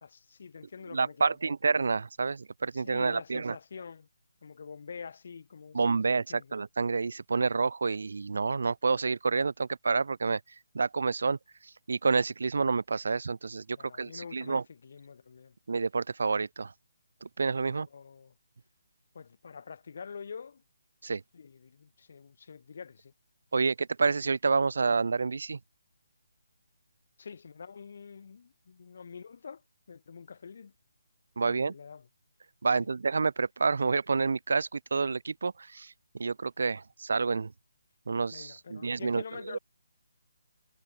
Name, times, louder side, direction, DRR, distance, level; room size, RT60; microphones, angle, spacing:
voice 1, 0.0-1.4 2.7-4.1 4.4-6.0 6.3-6.5 13.7-15.6 17.7-18.3 19.1-20.6 21.3-23.1 27.2-30.7 31.4-32.1 32.8-32.9 38.3-39.6, left 6 dB, 40° left, 2.4 m, -46 dB
voice 2, 0.9-3.6 5.7-10.4 10.7-11.4 11.6-14.6 15.7-16.7 17.2-17.9 21.0-21.2 23.5-25.6 31.4-31.7 32.6-37.5 38.1-39.2 39.5-39.6, right 4 dB, 55° right, 0.6 m, -29 dB
hypercardioid pair, 180°, 0 cm